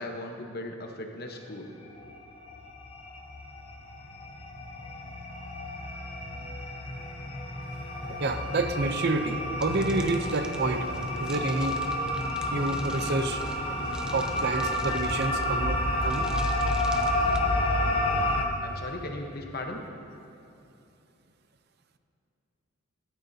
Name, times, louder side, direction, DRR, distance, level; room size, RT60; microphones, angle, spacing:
voice 1, 0.0-1.7 18.6-19.8, left 2 dB, 50° left, 3 dB, 1.0 m, -37 dB
sound 1, 2.0-2.2 2.4-18.4, left 1 dB, 30° left, 0.8 m, -30 dB
voice 2, 8.1-10.9 11.2-11.8 12.5-13.8 14.1-16.3, right 3 dB, 55° right, 8 dB, 0.6 m, -29 dB
sound 2, 9.6-17.4, right 1 dB, 5° right, 0.5 m, -47 dB
15.5 x 12.5 x 2.8 m, 2.8 s
head